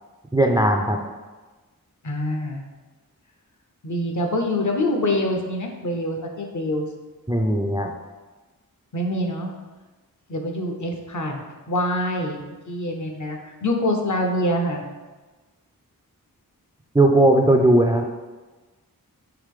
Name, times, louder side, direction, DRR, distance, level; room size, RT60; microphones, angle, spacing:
voice 1, 0.3-1.0 7.3-7.9 16.9-18.1, right 1 dB, 10° right, 3 dB, 0.4 m, -17 dB
voice 2, 2.0-2.6 3.8-6.9 8.9-9.5 10.3-12.4 12.7-14.8, left 1 dB, 55° left, 3 dB, 0.8 m, -25 dB
4.8 x 3.0 x 3.7 m, 1.2 s
cardioid pair, 40°, 36 cm